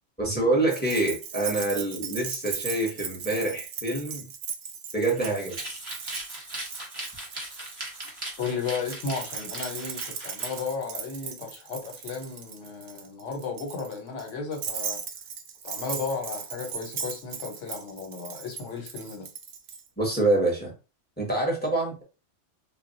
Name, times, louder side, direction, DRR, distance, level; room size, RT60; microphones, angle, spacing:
voice 1, 0.2-4.3 4.9-5.6 20.0-20.7 21.2-22.0, right 2 dB, 10° left, 0.7 m, -26 dB
Keys jangling, 0.7-8.1 8.8-19.8, right 7 dB, 65° right, 0.8 m, -37 dB
sound 1, 5.1-10.7, right 1 dB, 25° right, 0.7 m, -39 dB
voice 2, 8.4-15.0 15.6-19.3, left 5 dB, 75° left, 1.1 m, -34 dB
2.3 x 2.0 x 3.8 m
omnidirectional pair, 1.2 m